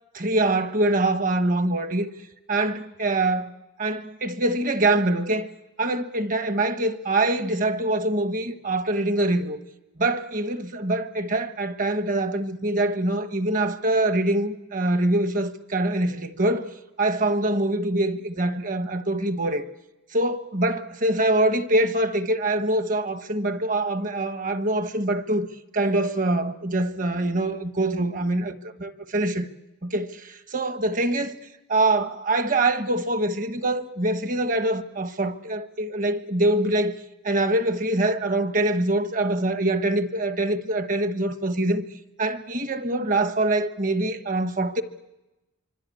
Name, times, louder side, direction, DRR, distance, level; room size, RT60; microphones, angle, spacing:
voice 1, 0.1-2.1 2.5-3.5 3.8-5.5 5.8-9.6 10.0-16.7 17.0-19.6 20.1-25.5 25.7-29.5 29.8-31.3 31.7-36.9 37.2-41.8 42.2-44.8, right 2 dB, 40° right, 1.3 m, -24 dB
26.0 x 25.0 x 8.5 m
head